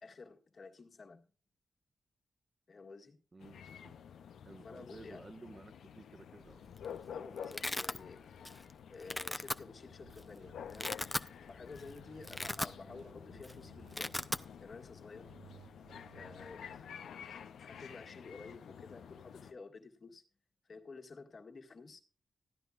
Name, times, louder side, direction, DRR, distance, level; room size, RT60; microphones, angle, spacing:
voice 1, 0.0-1.3 2.7-3.2 4.6-5.2 7.1-8.2 8.9-11.1 11.5-14.3 14.6-15.3 16.1-16.8 17.2-20.2 20.6-22.0, left 4 dB, 55° left, 1.7 m, -52 dB
voice 2, 3.3-3.9 4.4-6.6, right 3 dB, 40° right, 1.1 m, -54 dB
sound 1, 3.4-19.5, left 8 dB, 85° left, 0.5 m, -50 dB
Domestic sounds home sounds, 6.5-6.9 7.1-8.0 8.4-8.7 9.0-9.6 10.2-10.3 10.6-11.3 11.7-11.8 12.2-13.1 13.3-13.5 13.8-14.4, left 1 dB, 15° left, 0.6 m, -37 dB
sound 2, 10.0-11.4 11.7-14.6 15.1-16.8, right 6 dB, 85° right, 0.7 m, -60 dB
15.0 x 10.5 x 2.4 m
supercardioid pair, 45°, 0 cm